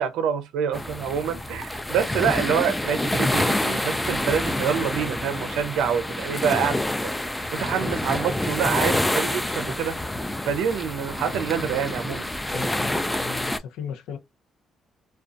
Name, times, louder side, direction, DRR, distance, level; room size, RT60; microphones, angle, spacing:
voice 1, 0.0-7.1 7.5-9.9 10.5-12.3, right 8 dB, 90° right, 0.4 m, -26 dB
sound 1, 0.7-13.6, left 1 dB, 10° left, 0.3 m, -27 dB
voice 2, 12.4-14.2, left 7 dB, 85° left, 0.5 m, -36 dB
2.4 x 2.2 x 2.4 m
cardioid pair, 90°, 0 cm